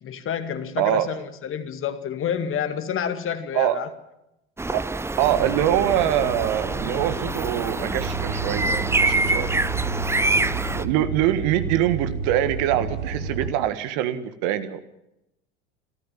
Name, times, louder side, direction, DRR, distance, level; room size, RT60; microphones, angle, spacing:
voice 1, 0.0-3.9, left 8 dB, 40° left, 9 dB, 2.1 m, -29 dB
voice 2, 0.8-1.1 3.5-3.8 4.7-4.8 5.2-9.5 10.8-14.8, right 12 dB, 60° right, 11 dB, 1.7 m, -24 dB
sound 1, 4.6-10.8, right 2 dB, 10° right, 0.9 m, -26 dB
sound 2, 5.2-13.5, right 4 dB, 75° right, 4.8 m, -31 dB
26.0 x 14.5 x 7.4 m, 0.87 s
hypercardioid pair, 80°, 33 cm